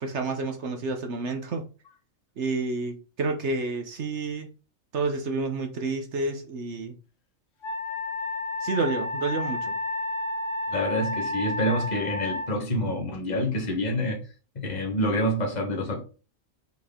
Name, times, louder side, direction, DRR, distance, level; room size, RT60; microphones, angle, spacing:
voice 1, 0.0-1.6 2.4-4.5 4.9-6.9 8.6-9.7, right 3 dB, 60° right, 1.2 m, -29 dB
Wind instrument woodwind instrument, 7.6-12.5, left 2 dB, 70° left, 1.2 m, -31 dB
voice 2, 10.7-14.2 14.6-16.0, equal, 35° left, 1.6 m, -27 dB
5.9 x 4.6 x 3.7 m
omnidirectional pair, 1.4 m